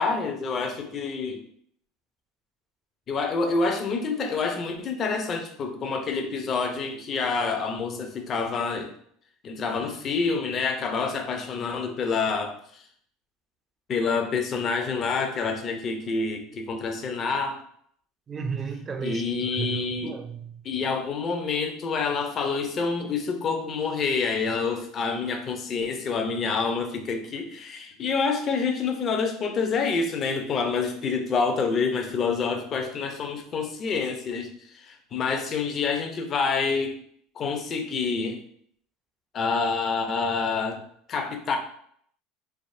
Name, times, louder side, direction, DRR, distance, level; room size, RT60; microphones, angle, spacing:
voice 1, 0.0-1.4 3.1-8.9 9.4-12.8 13.9-17.6 19.0-20.2 20.6-37.0 37.4-38.4 39.3-40.8 41.1-41.6, left 4 dB, 40° left, 5 dB, 0.5 m, -27 dB
voice 2, 18.3-20.6, right 5 dB, 30° right, 7 dB, 0.4 m, -33 dB
3.3 x 2.0 x 2.5 m, 0.64 s
hypercardioid pair, 90°, 0 cm